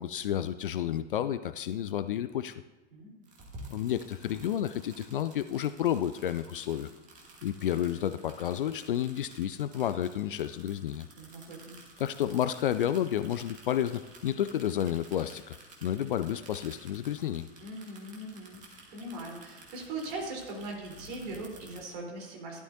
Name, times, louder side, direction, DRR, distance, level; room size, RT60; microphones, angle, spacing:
voice 1, 0.0-2.5 3.7-6.9 7.4-11.1 12.0-15.5 15.8-17.5, left 10 dB, 50° left, 13 dB, 0.4 m, -31 dB
voice 2, 2.9-3.3 11.2-11.8 17.6-18.6 18.9-22.6, right 2 dB, 45° right, -1 dB, 3.8 m, -40 dB
sound 1, 3.2-21.8, right 2 dB, 20° right, 2.3 m, -52 dB
16.0 x 12.0 x 2.7 m, 1.2 s
figure-of-eight pair, 100°, 35 cm